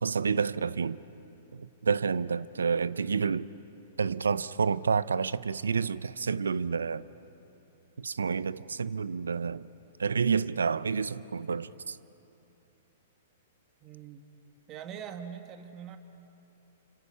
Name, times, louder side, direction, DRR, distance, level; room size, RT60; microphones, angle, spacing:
voice 1, 0.0-1.0 1.5-3.5 4.0-7.0 8.0-9.7 10.0-12.0, right 5 dB, 85° right, 0.6 m, -29 dB
voice 2, 13.8-14.3 14.7-16.0, right 8 dB, 30° right, 1.8 m, -42 dB
29.5 x 26.5 x 5.6 m
hypercardioid pair, 115°, 0 cm